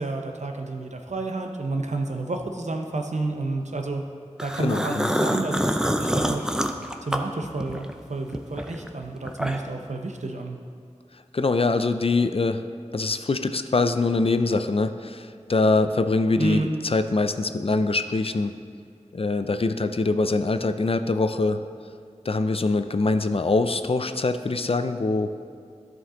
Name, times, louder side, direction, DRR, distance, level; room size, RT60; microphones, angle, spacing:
voice 1, 0.0-4.0 4.4-6.6 7.0-10.6 16.4-16.7, right 2 dB, 80° right, 3 dB, 0.7 m, -30 dB
sound 1, 4.4-8.0 8.3-9.8, equal, 5° right, 0.5 m, -26 dB
voice 2, 4.6-5.1 11.3-12.6 12.9-18.6 19.1-21.6 22.3-25.3, left 3 dB, 55° left, 9 dB, 0.4 m, -23 dB
12.5 x 5.3 x 3.8 m, 2.2 s
wide cardioid pair, 50°, 12 cm